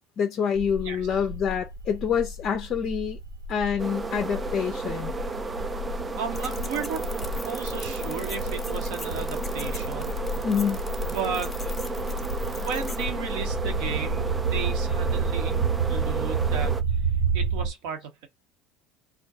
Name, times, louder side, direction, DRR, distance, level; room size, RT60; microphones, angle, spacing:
voice 1, 0.2-3.2 3.5-5.1 10.4-10.8, left 7 dB, 45° left, 0.4 m, -26 dB
sound 1, 0.6-17.7, right 3 dB, 85° right, 1.4 m, -30 dB
sound 2, 3.8-16.8, right 4 dB, 20° right, 0.4 m, -34 dB
voice 2, 6.2-7.1 7.4-10.2 11.0-11.5 12.6-16.8 17.3-18.3, right 6 dB, 65° right, 0.7 m, -34 dB
sound 3, 6.3-13.1, left 3 dB, 15° left, 0.7 m, -43 dB
2.4 x 2.2 x 2.6 m
hypercardioid pair, 70°, 0 cm